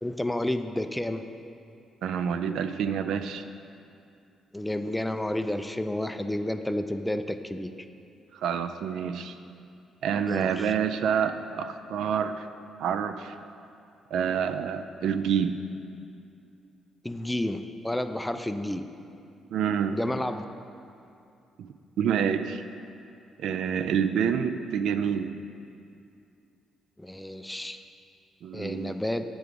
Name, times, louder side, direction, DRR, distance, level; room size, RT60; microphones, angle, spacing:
voice 1, 0.0-1.2 4.5-7.7 10.3-10.7 17.0-18.9 19.9-20.5 27.0-27.8 28.5-29.2, left 1 dB, 5° left, 8 dB, 0.3 m, -30 dB
voice 2, 2.0-3.4 8.3-9.4 10.0-12.5 12.8-13.4 14.1-15.6 19.5-20.0 21.6-21.7 22.0-22.6 23.4-25.3 28.4-28.9, right 7 dB, 80° right, 9 dB, 0.3 m, -27 dB
8.1 x 4.6 x 5.0 m, 2.6 s
cardioid pair, 90°, 0 cm